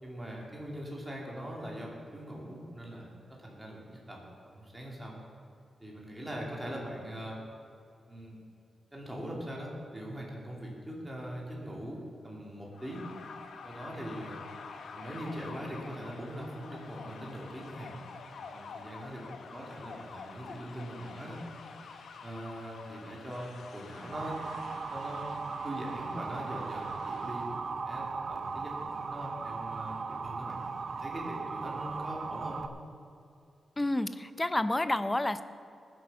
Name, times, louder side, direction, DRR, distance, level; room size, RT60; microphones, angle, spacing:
voice 1, 0.0-5.1 5.8-7.4 8.1-8.4 8.9-13.0 13.6-14.4 14.9-17.9 18.4-21.4 22.2-24.3 24.9-25.3 25.6-27.5 27.8-30.6 31.0-32.6, equal, 10° right, -3 dB, 2.8 m, -41 dB
sound 1, 12.7-27.6, left 5 dB, 85° left, 1.0 m, -48 dB
Motor vehicle (road) / Siren, 24.1-32.7, right 4 dB, 55° right, 0.7 m, -37 dB
voice 2, 33.8-35.4, left 1 dB, 15° left, 12 dB, 0.6 m, -29 dB
19.5 x 7.8 x 5.6 m, 2.5 s
wide cardioid pair, 125°, 0 cm